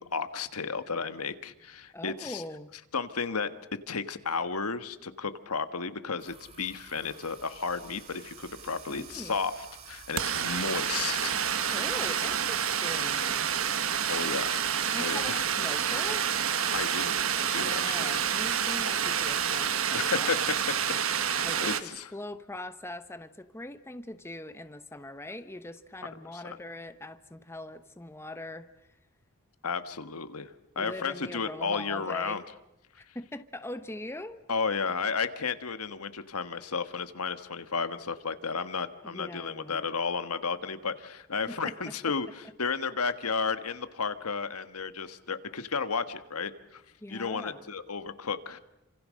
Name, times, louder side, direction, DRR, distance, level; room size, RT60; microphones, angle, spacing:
voice 1, 0.0-2.4 2.9-3.5 3.9-11.8 14.1-14.7 15.0-15.4 16.7-18.2 19.9-20.4 21.2-22.1 26.4-26.6 29.6-32.4 34.5-46.8 47.1-48.6, left 5 dB, 80° left, 10 dB, 1.5 m, -33 dB
voice 2, 1.9-2.7 8.9-9.4 11.7-13.5 14.9-16.3 17.5-20.4 21.4-28.7 30.8-32.4 33.0-34.4 39.0-39.8 41.5-41.9 47.0-47.6, left 1 dB, 10° left, 10 dB, 1.0 m, -41 dB
sound 1, 6.2-19.7, right 3 dB, 30° right, 3.0 m, -53 dB
sound 2, 8.1-8.2 8.4-21.8, right 8 dB, 65° right, 1.4 m, -29 dB
28.5 x 26.5 x 6.4 m, 0.89 s
head